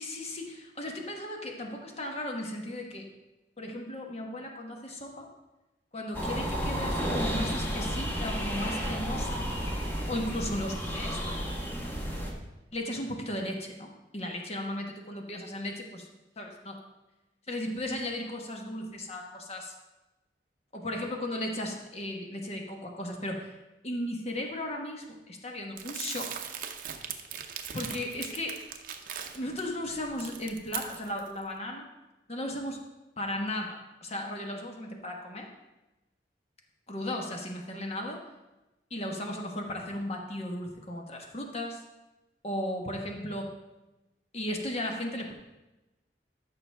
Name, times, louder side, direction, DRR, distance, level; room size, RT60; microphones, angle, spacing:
voice 1, 0.0-3.1 3.6-5.3 5.9-9.4 10.1-11.6 12.7-16.1 16.4-16.8 17.5-19.7 20.7-23.6 23.8-26.3 27.7-28.6 29.3-31.9 32.3-32.8 33.2-35.5 36.9-38.2 38.9-41.8 42.4-43.5 44.3-45.3, left 1 dB, 35° left, 2 dB, 1.2 m, -36 dB
sound 1, 6.1-12.3, equal, 10° left, 1.2 m, -32 dB
Crumpling crinkling, 25.8-29.6 30.0-31.3, right 8 dB, 50° right, 0.7 m, -39 dB
13.5 x 6.0 x 3.4 m, 1.0 s
head